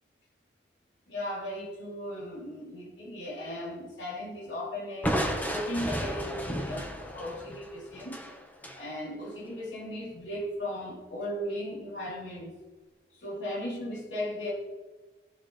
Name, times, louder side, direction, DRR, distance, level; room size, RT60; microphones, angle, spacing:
voice 1, 1.1-5.1 5.5-8.3 8.7-12.6 13.1-14.5, left 1 dB, 85° left, -4 dB, 3.8 m, -36 dB
Crushing, 5.0-8.8, equal, 10° left, 1.4 m, -33 dB
17.5 x 6.9 x 3.4 m, 1.2 s
head